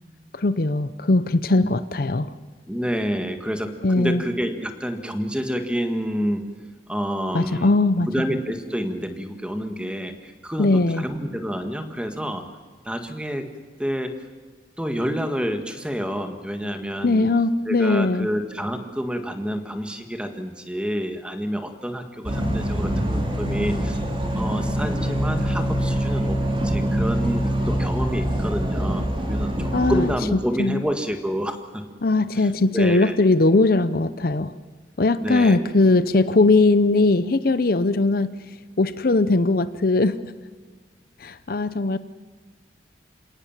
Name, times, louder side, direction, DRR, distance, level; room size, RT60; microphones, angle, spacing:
voice 1, 0.3-2.3 3.8-4.2 7.3-8.1 10.6-11.0 17.0-18.3 29.7-30.1 30.6-30.8 32.0-34.5 35.0-38.3 38.8-40.2 41.2-42.0, left 2 dB, 55° left, 14 dB, 0.6 m, -20 dB
voice 2, 2.7-6.4 6.9-7.7 8.1-12.4 12.8-13.5 13.8-14.2 14.8-17.3 17.7-24.0 24.3-31.8 32.3-33.2 35.2-35.6, equal, 5° right, 7 dB, 1.7 m, -28 dB
sound 1, 22.2-30.1, equal, 30° right, 3.4 m, -24 dB
28.0 x 18.0 x 7.3 m, 1.5 s
head